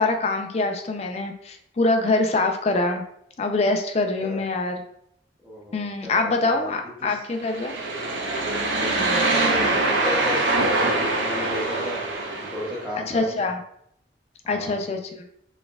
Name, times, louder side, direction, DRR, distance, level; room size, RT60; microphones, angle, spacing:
voice 1, 0.0-3.0 3.4-4.8 5.7-7.8 13.1-13.6 14.5-15.2, left 2 dB, 35° left, 5 dB, 0.4 m, -24 dB
voice 2, 5.4-7.2 8.8-12.0 12.3-13.5 14.4-14.8, left 1 dB, 5° right, -9 dB, 0.7 m, -34 dB
sound 1, 7.4-12.8, right 2 dB, 85° right, 0.7 m, -24 dB
4.2 x 3.4 x 2.3 m, 0.74 s
head